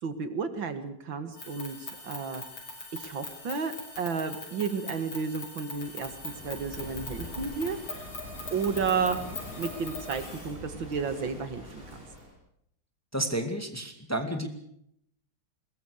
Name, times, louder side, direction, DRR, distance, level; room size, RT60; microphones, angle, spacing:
voice 1, 0.0-2.4 2.9-8.1 8.5-9.2 9.6-11.8, right 5 dB, 65° right, 10 dB, 2.5 m, -32 dB
sound 1, 1.3-10.5, left 2 dB, 75° left, 6.8 m, -42 dB
Walk footsteps / Wind / Waves surf, 5.7-12.3, left 1 dB, 25° right, 8.1 m, -44 dB
voice 2, 13.1-14.5, right 1 dB, 5° left, 7 dB, 2.1 m, -31 dB
22.0 x 20.5 x 6.5 m, 0.72 s
omnidirectional pair, 2.3 m